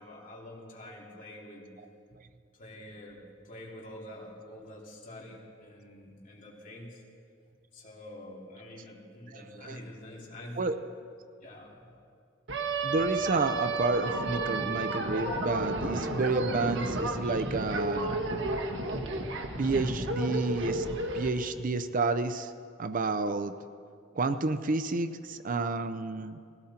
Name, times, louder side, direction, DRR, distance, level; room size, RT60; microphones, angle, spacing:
voice 1, 0.0-1.7 2.5-7.0 7.7-10.6 11.4-11.8, left 1 dB, 45° left, -3 dB, 3.2 m, -47 dB
voice 2, 9.3-9.8 10.6-10.8 12.8-18.2 19.6-20.9 21.1-22.5 22.8-23.5 24.1-26.4, right 3 dB, 45° right, 10 dB, 0.6 m, -30 dB
sound 1, 12.5-21.3, right 2 dB, 65° right, 1.6 m, -32 dB
20.0 x 16.5 x 4.4 m, 2.3 s
head